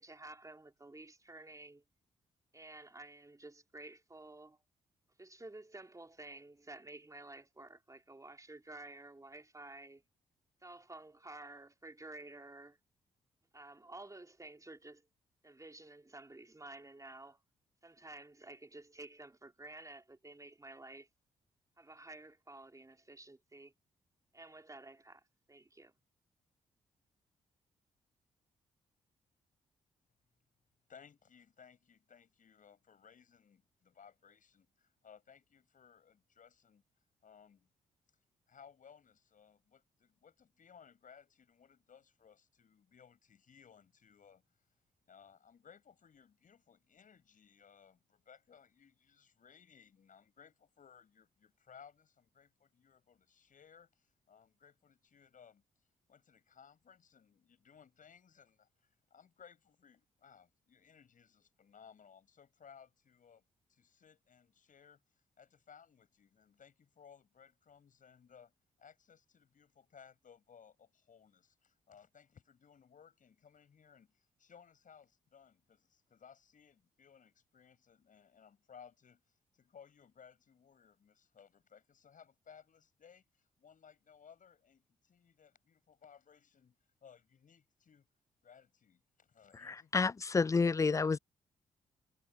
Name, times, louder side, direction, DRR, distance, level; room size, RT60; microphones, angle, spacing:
voice 1, 0.0-1.8 2.5-4.6 5.2-10.0 10.6-12.8 13.5-15.0 15.4-17.4 17.8-21.1 21.8-23.7 24.3-25.2 25.5-25.9, right 2 dB, 20° right, 3.6 m, -52 dB
voice 2, 30.9-36.8 37.2-37.7 38.5-44.4 45.1-55.6 56.1-63.4 63.7-68.5 68.8-86.8 87.0-88.1 88.4-89.9, left 7 dB, 55° left, 8.0 m, -61 dB
voice 3, 89.5-91.2, left 4 dB, 20° left, 0.3 m, -30 dB
hypercardioid pair, 40°, 16 cm